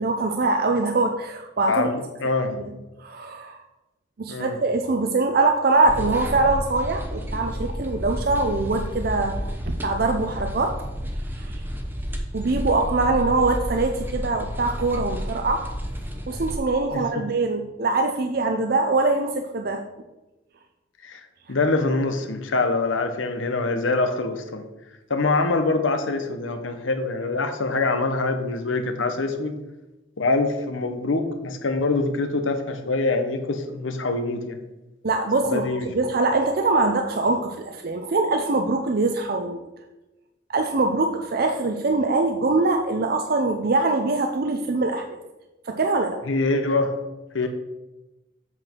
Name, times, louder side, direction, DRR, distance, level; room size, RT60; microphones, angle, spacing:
voice 1, 0.0-1.9 2.6-2.7 3.0-3.6 4.2-9.4 9.7-10.8 11.3-11.6 12.3-15.6 16.3-19.8 35.0-39.7 40.5-45.0 45.7-46.2, right 3 dB, 50° right, 4 dB, 0.5 m, -23 dB
voice 2, 1.7-2.5 4.3-4.6 16.9-17.2 21.0-21.2 21.5-24.6 25.1-29.5 30.2-34.6 35.5-35.9 46.3-46.9 47.3-47.5, left 3 dB, 90° left, 7 dB, 1.0 m, -24 dB
sound 1, 5.9-16.6, equal, 10° right, 0.8 m, -31 dB
7.8 x 5.9 x 4.5 m, 1.0 s
head